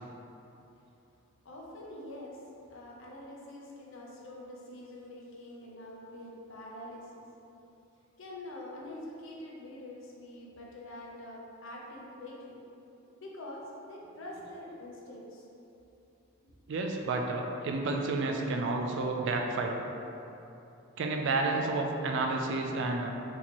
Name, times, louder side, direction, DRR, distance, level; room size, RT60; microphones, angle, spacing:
voice 1, 1.4-2.4 2.7-7.3 8.2-12.6 13.2-15.4, left 1 dB, 60° left, -3 dB, 0.6 m, -45 dB
voice 2, 16.7-19.7 21.0-23.1, right 3 dB, 55° right, 2 dB, 0.3 m, -30 dB
4.2 x 2.8 x 2.9 m, 2.8 s
head